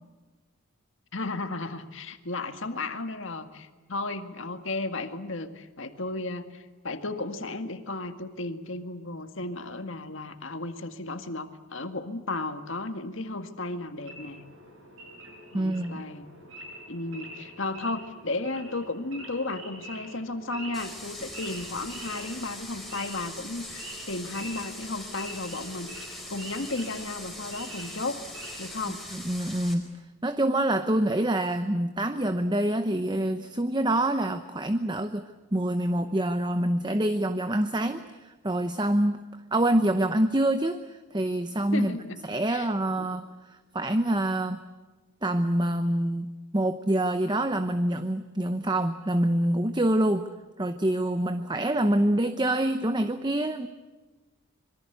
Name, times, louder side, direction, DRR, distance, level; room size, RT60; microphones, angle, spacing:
voice 1, 1.1-14.4 15.5-16.3 16.9-28.2 28.6-29.0 41.7-42.2 42.5-42.7 43.0-43.1, left 2 dB, 60° left, 8 dB, 1.9 m, -34 dB
Wild animals / Idling, 14.0-28.8, right 1 dB, 65° right, 7.0 m, -45 dB
voice 2, 15.5-16.0 29.1-29.9 30.2-35.2 35.5-39.2 39.5-42.0 42.3-44.6 45.2-50.3 50.6-53.7, right 1 dB, 20° right, 9 dB, 0.8 m, -26 dB
sound 1, 20.7-29.7, left 1 dB, ahead, 4.4 m, -42 dB
26.5 x 23.0 x 8.1 m, 1.3 s
head